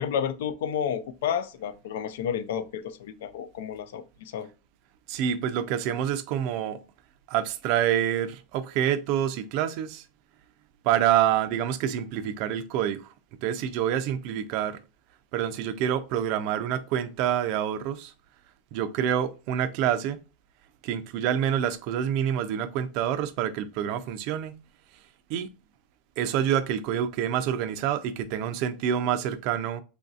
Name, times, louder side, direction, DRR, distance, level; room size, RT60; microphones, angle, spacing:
voice 1, 0.0-4.5, left 8 dB, 85° left, 0.4 m, -31 dB
voice 2, 5.1-6.8 7.3-10.0 10.8-13.1 13.4-14.8 15.3-18.1 18.7-20.2 20.8-24.6 25.3-25.5 26.2-29.8, right 10 dB, 60° right, 0.4 m, -27 dB
3.1 x 2.6 x 2.4 m
supercardioid pair, 135°, 0 cm